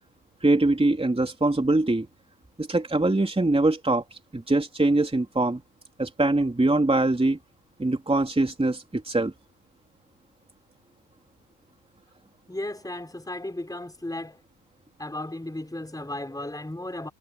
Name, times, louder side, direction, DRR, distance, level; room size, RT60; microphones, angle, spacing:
voice 1, 0.4-2.1 2.6-4.0 4.3-5.6 6.0-7.4 7.8-9.3, right 2 dB, 10° right, 3.3 m, -23 dB
voice 2, 12.5-14.4 15.0-17.1, left 1 dB, 10° left, 4.2 m, -35 dB
cardioid pair, 100°, 47 cm